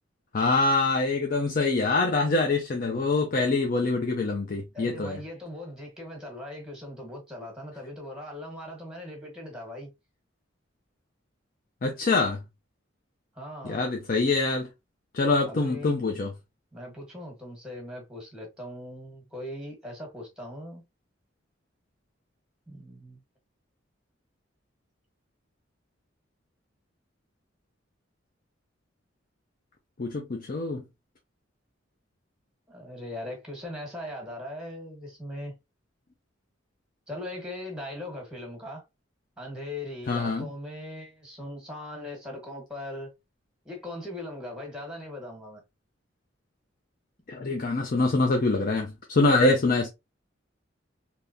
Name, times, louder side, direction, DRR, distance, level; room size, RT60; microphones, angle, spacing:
voice 1, 0.3-5.2 11.8-12.4 13.6-14.7 15.1-16.3 30.0-30.8 40.1-40.5 47.3-49.9, left 3 dB, 45° left, 0.5 m, -25 dB
voice 2, 4.7-9.9 13.3-13.8 15.4-16.0 16.7-20.8 22.7-23.2 32.7-35.5 37.1-38.8 39.4-43.1 43.6-45.6, left 1 dB, 5° right, 1.3 m, -39 dB
3.6 x 2.8 x 2.6 m
head